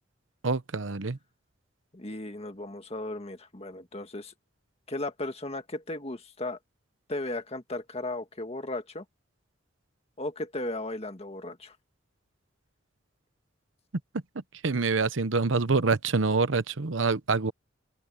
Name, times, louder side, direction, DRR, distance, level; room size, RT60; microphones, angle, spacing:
voice 1, 0.4-1.2 14.6-17.5, right 4 dB, 80° right, 0.9 m, -26 dB
voice 2, 1.9-4.3 4.9-6.6 7.1-9.0 10.2-11.8, left 2 dB, 30° left, 1.8 m, -36 dB
open air
head